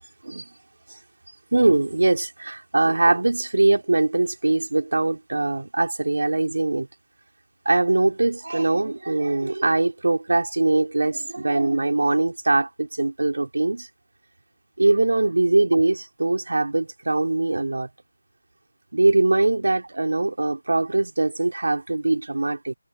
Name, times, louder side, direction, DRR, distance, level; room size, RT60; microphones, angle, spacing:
voice 1, 1.5-6.9 7.7-13.9 14.8-17.9 18.9-22.7, right 2 dB, 55° right, 4.1 m, -22 dB
figure-of-eight pair, 180°, 0 cm